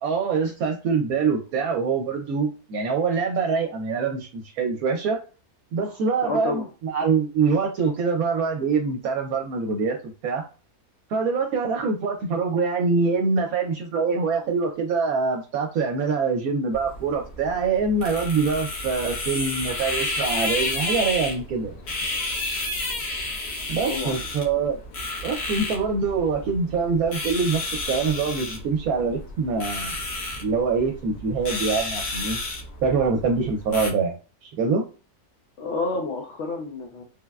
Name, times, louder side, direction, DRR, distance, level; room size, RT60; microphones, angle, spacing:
voice 1, 0.0-5.2 5.7-10.0 10.2-10.4 11.1-21.7 23.7-24.8 25.2-27.6 27.9-30.0 30.4-32.4 32.8-34.1 34.4-34.8, right 5 dB, 75° right, 2 dB, 1.0 m, -24 dB
voice 2, 6.2-6.6 23.9-24.2 35.6-37.0, left 3 dB, 65° left, 0 dB, 0.7 m, -29 dB
sound 1, 16.7-33.9, left 2 dB, 85° left, 1.5 m, -31 dB
3.4 x 2.0 x 2.3 m, 0.34 s
omnidirectional pair, 1.6 m